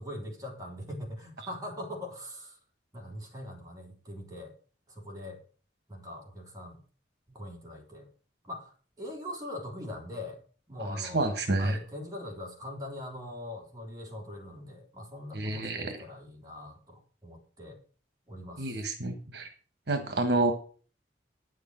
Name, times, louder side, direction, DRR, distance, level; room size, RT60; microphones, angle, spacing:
voice 1, 0.0-2.6 2.9-4.5 4.9-5.4 5.9-6.8 7.3-8.1 8.4-10.4 10.7-17.8 18.3-18.8, left 1 dB, 20° right, 1 dB, 3.4 m, -42 dB
voice 2, 10.8-11.8 15.3-16.0 18.6-19.5 19.9-20.5, right 2 dB, 65° right, 7 dB, 1.4 m, -29 dB
9.6 x 6.7 x 7.8 m, 0.42 s
head